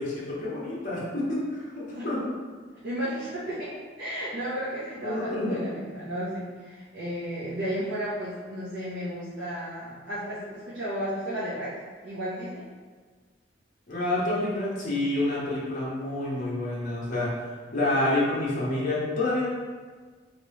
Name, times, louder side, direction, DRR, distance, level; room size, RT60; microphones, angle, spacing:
voice 1, 0.0-2.3 5.0-5.6 13.9-17.3 17.7-19.5, left 2 dB, 45° left, -7 dB, 0.9 m, -28 dB
voice 2, 2.8-11.7 12.0-12.6, equal, 75° right, -10 dB, 0.9 m, -33 dB
3.2 x 2.9 x 3.1 m, 1.5 s
head